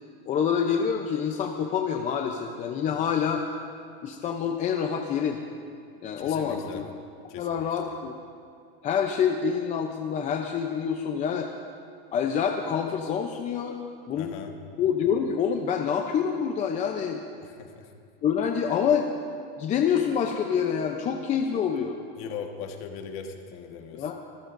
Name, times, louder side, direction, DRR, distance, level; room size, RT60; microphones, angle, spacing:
voice 1, 0.3-3.4 4.0-5.4 6.0-6.9 7.4-8.1 8.8-11.5 12.1-13.8 14.1-14.3 14.8-17.2 18.2-19.1 19.6-22.0 23.9-24.1, left 7 dB, 25° left, 3 dB, 0.6 m, -26 dB
voice 2, 6.2-6.8 7.3-7.9 14.2-14.5 17.4-17.9 22.2-24.1, left 6 dB, 40° left, 4 dB, 1.5 m, -39 dB
26.0 x 14.5 x 2.6 m, 2.4 s
supercardioid pair, 155°, 31 cm